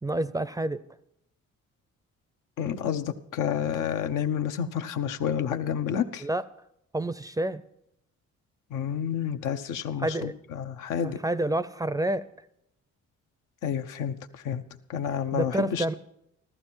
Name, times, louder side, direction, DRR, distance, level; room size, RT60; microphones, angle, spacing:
voice 1, 0.0-0.8 6.2-6.4 6.9-7.6 10.0-10.3 11.0-12.3 15.3-15.9, right 1 dB, 10° right, 16 dB, 0.5 m, -28 dB
voice 2, 2.6-6.3 8.7-11.2 13.6-14.6 14.9-15.9, left 8 dB, 90° left, 7 dB, 0.9 m, -29 dB
14.5 x 13.5 x 4.5 m, 0.80 s
cardioid pair, 90°, 30 cm